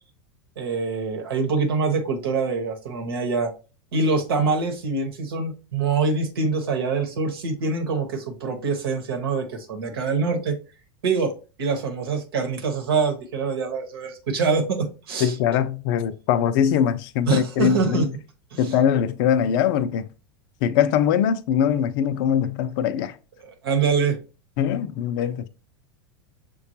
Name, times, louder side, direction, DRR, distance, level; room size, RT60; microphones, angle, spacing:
voice 1, 0.6-3.5 3.9-10.6 11.0-11.3 11.6-15.3 17.3-18.1 18.5-18.6 23.6-24.2, right 4 dB, 80° right, 1.0 m, -24 dB
voice 2, 15.2-18.1 18.6-20.1 20.6-23.2 24.6-25.5, left 9 dB, 60° left, 0.5 m, -22 dB
6.4 x 2.3 x 2.7 m
hypercardioid pair, 95°, 12 cm